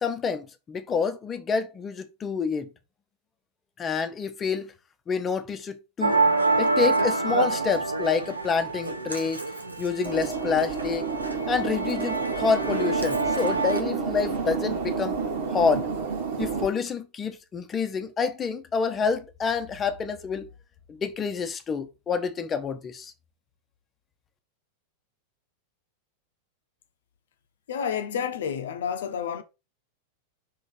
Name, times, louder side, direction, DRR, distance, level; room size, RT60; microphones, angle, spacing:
voice 1, 0.0-2.7 3.8-4.7 5.1-6.2 6.6-9.4 9.8-11.1 11.5-15.2 15.5-15.9 16.4-20.5 20.9-23.1, left 5 dB, 20° left, 0.9 m, -28 dB
Musical instrument, 6.0-13.8, right 3 dB, 85° right, 1.0 m, -27 dB
sound 1, 10.1-16.7, right 5 dB, 55° right, 1.7 m, -30 dB
voice 2, 27.7-29.4, left 7 dB, 60° left, 0.8 m, -30 dB
5.7 x 4.0 x 5.1 m
figure-of-eight pair, 90°, 0 cm